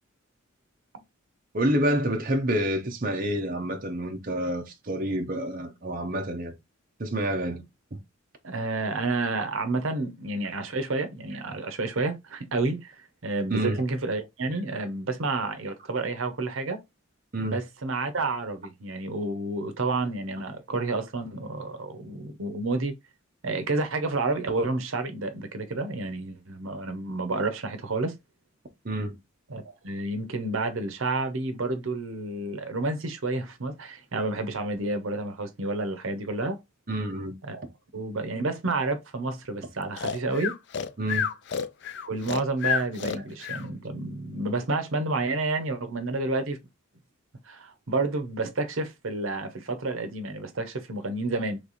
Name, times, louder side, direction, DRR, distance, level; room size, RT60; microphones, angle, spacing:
voice 1, 1.5-6.5 7.0-7.6 7.9-8.0 13.5-13.8 17.3-17.6 28.8-29.1 36.9-37.4 41.0-41.2, right 1 dB, 45° right, 0.8 m, -28 dB
voice 2, 8.4-16.8 17.4-22.9 23.4-28.1 29.5-36.6 37.5-37.7 37.9-40.5 42.1-46.6 47.4-51.6, right 3 dB, 80° right, 0.8 m, -30 dB
Breathing, 40.0-43.7, left 7 dB, 60° left, 0.4 m, -30 dB
3.3 x 3.3 x 4.0 m
head